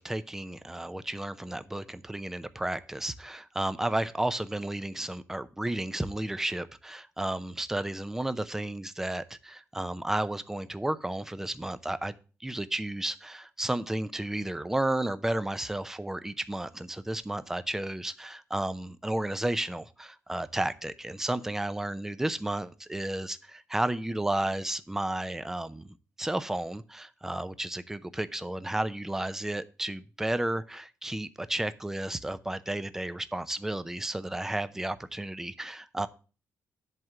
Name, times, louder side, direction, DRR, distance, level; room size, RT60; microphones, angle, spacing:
voice 1, 0.0-12.1 12.4-25.9 26.2-36.1, right 1 dB, 10° right, 0.6 m, -32 dB
11.0 x 3.7 x 7.5 m
cardioid pair, 130°, 5 cm